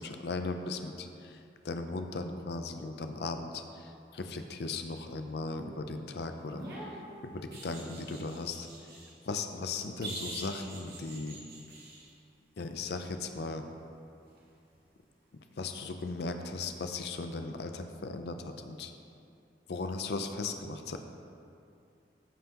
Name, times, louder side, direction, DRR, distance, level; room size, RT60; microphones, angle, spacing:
voice 1, 0.0-6.7 7.2-8.7 9.2-11.4 12.6-13.6 15.6-18.9 19.7-21.0, left 3 dB, 70° left, 6 dB, 0.5 m, -37 dB
sound 1, 6.4-9.1 10.0-12.1 14.7-14.9, right 2 dB, 60° right, 1.6 m, -44 dB
14.5 x 5.6 x 2.9 m, 2.6 s
head